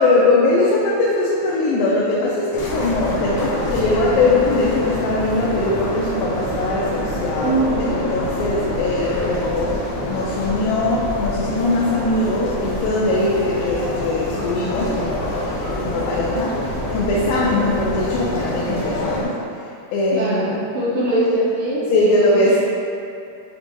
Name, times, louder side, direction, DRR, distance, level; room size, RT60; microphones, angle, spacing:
voice 1, 0.0-19.3 19.9-20.6 21.9-22.6, left 2 dB, 90° left, -6 dB, 2.3 m, -21 dB
sound 1, 2.5-19.2, left 1 dB, 75° left, 1.8 m, -26 dB
voice 2, 7.4-8.0 20.1-22.6, right 1 dB, 80° right, -11 dB, 2.4 m, -22 dB
7.0 x 2.6 x 2.7 m, 2.5 s
omnidirectional pair, 3.8 m